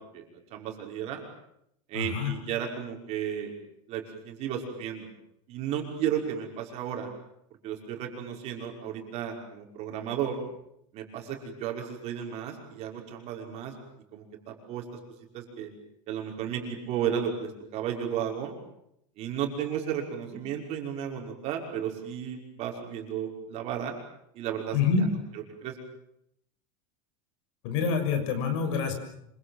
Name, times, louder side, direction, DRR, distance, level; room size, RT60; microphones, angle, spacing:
voice 1, 0.1-1.2 1.9-3.5 3.9-5.1 5.5-7.1 7.6-10.4 10.9-13.8 14.1-15.0 15.3-15.7 16.1-18.5 19.2-23.9 24.3-25.8, right 9 dB, 40° right, 2 dB, 5.8 m, -34 dB
voice 2, 1.9-2.3 24.7-25.1 27.6-28.9, left 5 dB, 65° left, 7 dB, 6.6 m, -26 dB
27.0 x 25.0 x 7.5 m, 0.76 s
supercardioid pair, 165°, 17 cm